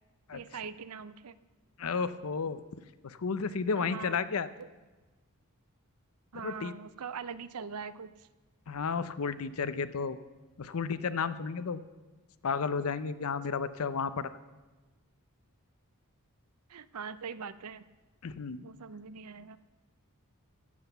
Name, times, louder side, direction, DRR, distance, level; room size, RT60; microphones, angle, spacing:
voice 1, 0.3-1.4 3.8-4.2 4.6-4.7 6.3-8.3 16.7-17.9 18.6-19.6, right 6 dB, 80° right, 15 dB, 0.6 m, -42 dB
voice 2, 1.8-2.6 3.0-4.5 6.4-6.7 8.7-10.2 10.6-11.8 12.4-14.3 18.2-18.6, left 5 dB, 70° left, 13 dB, 0.6 m, -32 dB
14.5 x 8.0 x 6.8 m, 1.2 s
head